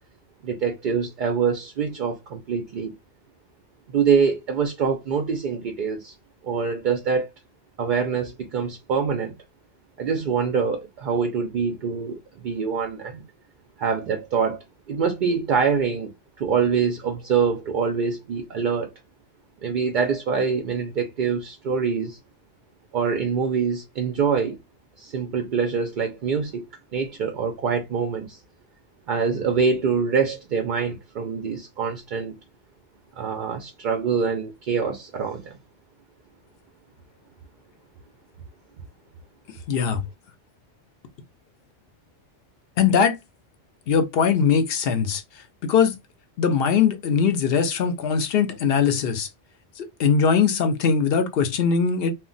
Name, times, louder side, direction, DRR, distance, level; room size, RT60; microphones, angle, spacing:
voice 1, 0.4-2.9 3.9-6.1 6.4-7.3 7.8-9.3 10.0-12.2 12.4-13.2 13.8-14.6 14.9-16.1 16.4-18.9 19.6-22.2 22.9-24.6 25.0-26.7 26.9-28.4 29.1-32.3 33.2-35.6, right 6 dB, 60° right, 0.5 m, -25 dB
voice 2, 39.7-40.0 42.8-43.2 43.9-45.9 46.4-49.3 49.8-52.1, left 6 dB, 65° left, 0.7 m, -21 dB
2.2 x 2.2 x 3.7 m
omnidirectional pair, 1.2 m